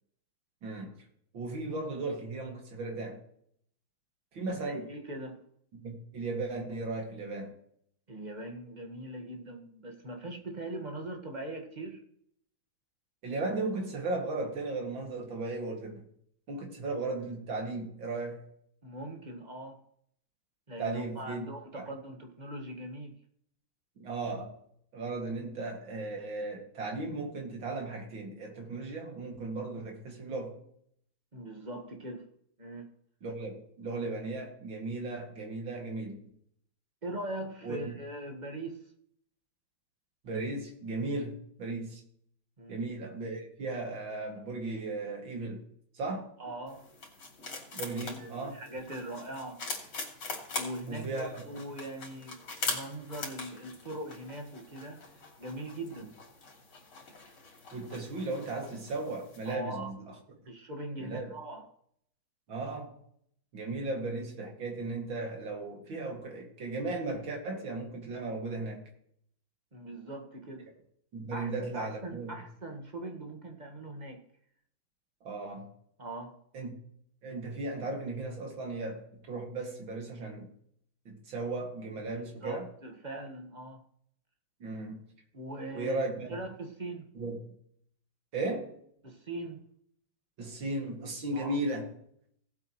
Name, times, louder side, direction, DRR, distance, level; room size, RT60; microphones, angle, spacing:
voice 1, 0.6-1.0 1.3-3.2 4.3-4.9 5.7-7.5 13.2-16.0 16.5-18.4 20.8-21.5 21.8-21.9 24.0-24.6 24.9-30.6 33.2-36.2 37.6-38.0 40.2-42.0 42.7-45.6 45.9-46.3 47.7-48.6 50.9-51.4 57.7-60.0 61.0-61.3 62.5-63.0 63.5-68.9 71.1-72.3 75.2-75.7 76.5-76.8 77.2-80.5 81.1-82.7 84.6-85.1 85.7-86.3 87.1-87.4 88.3-88.8 90.4-91.9, right 2 dB, 70° right, 2 dB, 3.0 m, -36 dB
voice 2, 4.6-5.4 8.1-12.0 18.8-19.8 20.7-23.2 31.3-32.3 32.6-32.9 37.0-38.8 42.6-42.9 46.4-46.9 47.8-49.7 50.5-55.0 55.4-56.1 59.4-59.9 60.5-61.7 69.7-70.7 71.3-74.2 76.0-76.4 82.4-83.8 85.3-86.0 86.3-87.1 89.0-89.6 91.3-91.6, right 1 dB, 25° right, 4 dB, 1.6 m, -41 dB
sound 1, 46.7-59.5, left 3 dB, 90° left, 3.5 m, -42 dB
18.0 x 8.2 x 3.1 m, 0.67 s
omnidirectional pair, 2.2 m